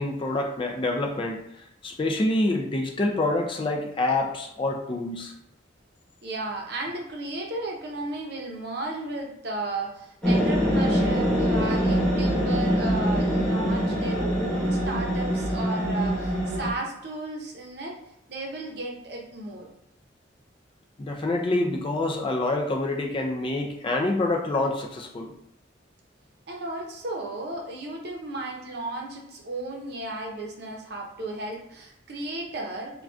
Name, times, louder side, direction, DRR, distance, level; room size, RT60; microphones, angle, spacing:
voice 1, 0.0-5.3 21.0-25.3, left 2 dB, 25° left, 2 dB, 0.3 m, -27 dB
voice 2, 6.2-18.0 18.3-19.7 26.5-33.0, right 2 dB, 60° right, 0 dB, 0.7 m, -34 dB
sound 1, 10.2-16.7, equal, 5° left, 0.7 m, -24 dB
3.5 x 2.2 x 2.4 m, 0.77 s
head